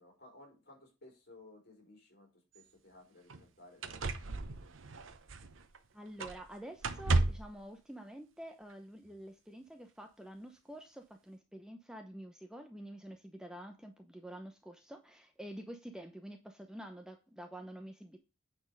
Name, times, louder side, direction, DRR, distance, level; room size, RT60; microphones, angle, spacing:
voice 1, 0.0-2.3 2.5-4.8 17.6-17.7, left 2 dB, 55° left, 0 dB, 4.6 m, -58 dB
sound 1, 2.6-2.7 3.3-3.4 3.8-5.8 6.2-6.5 6.8-7.6 8.7-8.8, right 2 dB, 85° right, 0.8 m, -34 dB
voice 2, 5.9-18.2, right 1 dB, 5° right, 5 dB, 0.8 m, -48 dB
9.2 x 4.5 x 5.3 m, 0.31 s
head